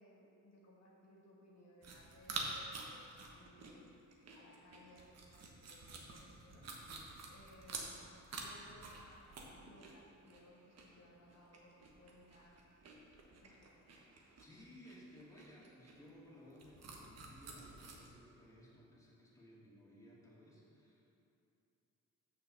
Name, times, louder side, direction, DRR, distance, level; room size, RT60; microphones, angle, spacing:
voice 1, 0.0-3.8 4.3-9.2 9.5-12.6 13.4-13.7, left 1 dB, 60° left, -4 dB, 1.6 m, -62 dB
sound 1, 1.8-18.1, right 3 dB, 55° right, 1.3 m, -49 dB
voice 2, 14.4-21.2, equal, 10° left, -6 dB, 2.2 m, -59 dB
6.7 x 5.7 x 6.7 m, 2.7 s
cardioid pair, 100°, 30 cm